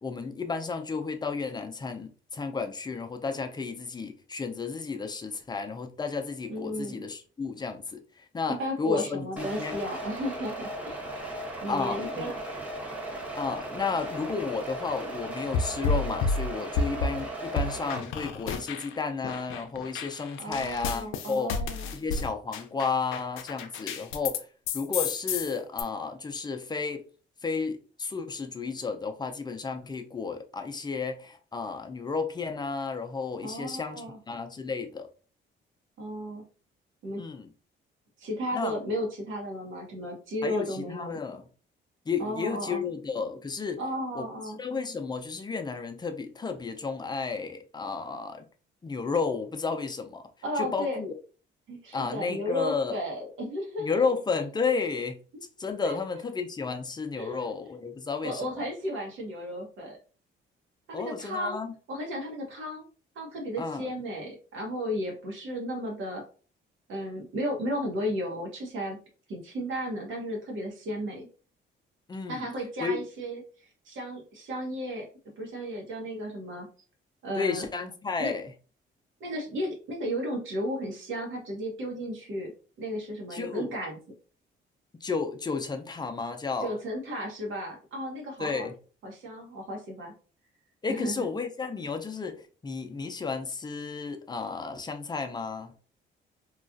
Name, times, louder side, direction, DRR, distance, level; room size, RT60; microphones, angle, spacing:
voice 1, 0.0-9.8 11.7-12.3 13.4-21.5 21.9-24.5 24.7-27.0 27.4-35.1 37.2-37.5 38.5-38.7 40.4-41.4 42.1-43.8 44.1-44.3 44.6-48.4 48.8-50.2 50.6-51.1 51.9-53.0 53.8-55.2 55.6-58.5 60.9-61.7 63.6-63.9 72.1-72.5 72.8-73.0 77.4-78.5 83.3-83.7 85.0-86.7 88.4-88.7 90.8-95.7, left 4 dB, 20° left, 0.5 m, -32 dB
voice 2, 6.5-7.0 8.5-11.0 11.6-12.3 20.4-21.9 33.4-34.2 36.0-36.4 37.0-37.2 38.2-41.2 42.2-42.8 43.8-44.6 50.4-51.0 51.7-54.0 55.8-55.9 57.1-57.5 58.2-60.0 60.9-61.6 61.9-62.8 63.1-66.2 66.9-69.0 69.3-71.3 72.3-73.4 73.8-75.1 75.4-76.7 77.2-77.7 78.2-78.3 79.2-82.5 82.8-84.0 86.6-88.7 89.0-90.1 90.9-91.3, equal, 80° right, 1.1 m, -34 dB
sound 1, 9.4-18.0, right 1 dB, 5° right, 0.9 m, -37 dB
sound 2, 15.5-17.2 17.6-19.0 19.2-24.4 24.7-25.8, left 4 dB, 85° left, 0.4 m, -31 dB
3.0 x 2.4 x 2.5 m
cardioid pair, 90°, 20 cm